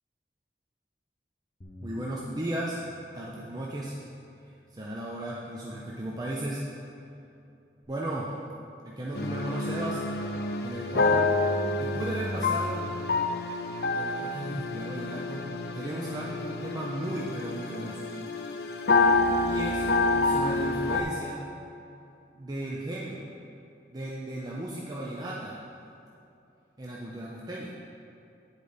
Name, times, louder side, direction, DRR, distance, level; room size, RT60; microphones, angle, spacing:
Bass guitar, 1.6-7.9, equal, 45° left, 0.9 m, -54 dB
voice 1, 1.8-2.8 3.1-4.0 4.4-6.6 7.9-8.4 8.8-10.0 10.6-11.3 11.8-12.8 13.9-15.4 15.7-18.1 19.4-19.9 20.1-21.4 22.3-23.3 23.9-25.6 26.8-27.7, right 1 dB, 20° right, -5 dB, 0.6 m, -35 dB
sound 1, 9.1-21.0, left 3 dB, 60° left, 0.5 m, -28 dB
9.7 x 4.0 x 5.0 m, 2.7 s
head